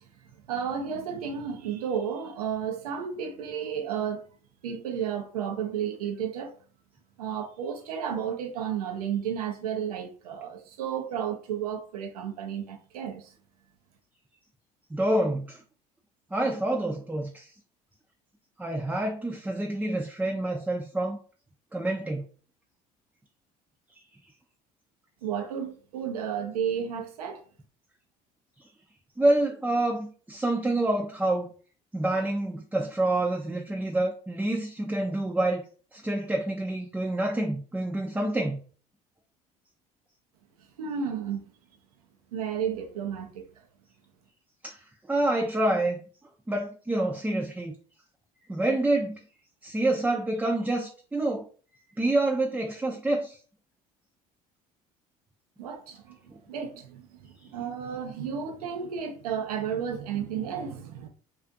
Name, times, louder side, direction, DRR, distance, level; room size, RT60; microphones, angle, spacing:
voice 1, 0.5-4.2 4.6-6.5 7.2-13.2 25.2-27.4 40.8-41.4 42.3-43.4 55.6-56.0 56.5-61.1, right 8 dB, 90° right, 0.5 m, -32 dB
voice 2, 14.9-15.6 16.3-17.5 18.6-21.2 21.7-22.2 29.2-31.5 31.9-35.6 35.9-38.6 44.6-44.8 45.1-46.0 46.5-47.7 48.5-49.2 49.6-51.5 52.0-53.4, right 1 dB, 10° right, 0.4 m, -27 dB
2.4 x 2.4 x 2.5 m
hypercardioid pair, 65°, 19 cm